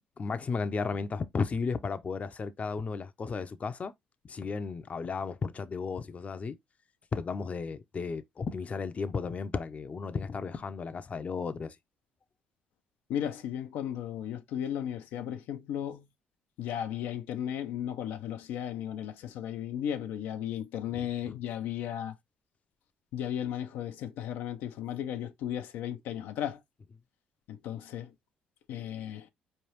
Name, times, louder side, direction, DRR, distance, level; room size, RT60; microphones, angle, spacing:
voice 1, 0.2-3.9 4.2-6.6 7.1-11.8 20.9-21.4, left 5 dB, 40° left, 0.7 m, -34 dB
voice 2, 13.1-16.0 16.6-22.1 23.1-26.6 27.5-28.1 28.7-29.2, left 10 dB, 80° left, 0.6 m, -35 dB
4.6 x 3.3 x 3.0 m
supercardioid pair, 65°, 4 cm